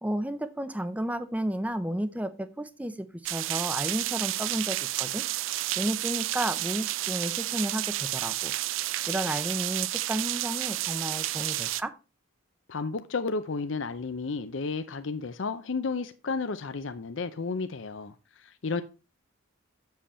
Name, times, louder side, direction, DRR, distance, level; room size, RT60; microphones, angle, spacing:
voice 1, 0.0-5.2 5.8-8.5 9.1-11.9, right 1 dB, 5° right, 0.6 m, -32 dB
sound 1, 3.3-11.8, right 15 dB, 70° right, 0.4 m, -31 dB
voice 2, 12.7-18.8, left 4 dB, 65° left, 0.6 m, -32 dB
7.6 x 7.0 x 4.3 m
head